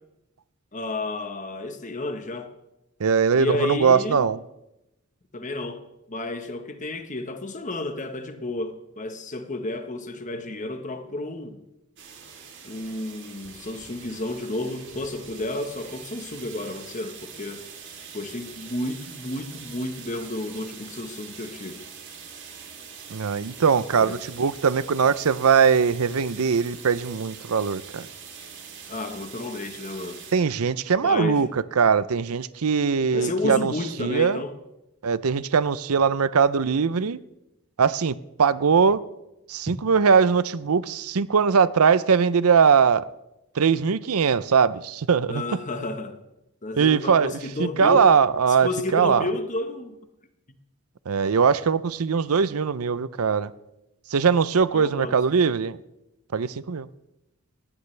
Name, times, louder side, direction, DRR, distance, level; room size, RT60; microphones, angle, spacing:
voice 1, 0.7-2.5 3.3-4.3 5.3-11.6 12.6-17.6 18.1-21.8 24.0-24.2 28.9-30.2 31.0-31.4 33.1-34.5 45.3-46.2 46.6-48.1 48.5-50.0 54.7-55.2, left 2 dB, 35° left, 1.2 m, -31 dB
voice 2, 3.0-4.4 23.1-28.1 30.3-33.7 34.0-34.4 35.0-37.2 37.8-39.0 39.5-43.1 43.6-45.4 46.8-49.2 51.1-53.5 54.1-55.8 56.3-56.9, right 6 dB, 85° right, 0.6 m, -21 dB
sound 1, 12.0-30.3, right 6 dB, 55° right, 3.4 m, -43 dB
19.0 x 16.0 x 3.3 m
head